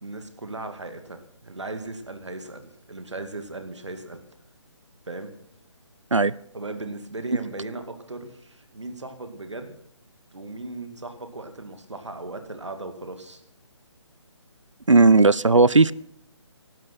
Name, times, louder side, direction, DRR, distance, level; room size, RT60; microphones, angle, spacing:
voice 1, 0.0-4.2 5.1-5.4 6.5-9.8 10.3-13.4, right 2 dB, 70° right, 7 dB, 2.3 m, -37 dB
voice 2, 14.9-15.9, right 3 dB, 90° right, 21 dB, 0.5 m, -16 dB
16.5 x 12.5 x 5.9 m, 0.70 s
figure-of-eight pair, 145°, 15 cm